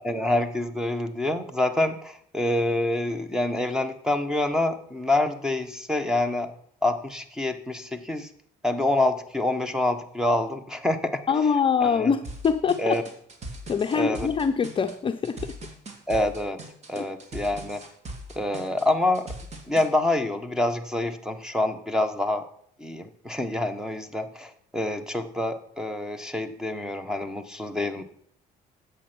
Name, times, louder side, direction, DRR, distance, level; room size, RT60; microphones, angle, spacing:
voice 1, 0.0-6.5 6.8-8.3 8.6-11.2 11.8-12.1 12.8-13.0 13.9-14.3 16.1-16.6 16.9-17.8 18.3-19.3 19.7-22.5 22.8-28.0, left 1 dB, 5° right, 9 dB, 1.2 m, -26 dB
voice 2, 11.3-13.0 13.7-15.5 17.0-17.1, left 6 dB, 30° left, 6 dB, 0.7 m, -24 dB
sound 1, 12.2-19.9, right 1 dB, 40° right, 2.5 m, -40 dB
10.5 x 8.1 x 6.1 m, 0.64 s
cardioid pair, 110°, 17 cm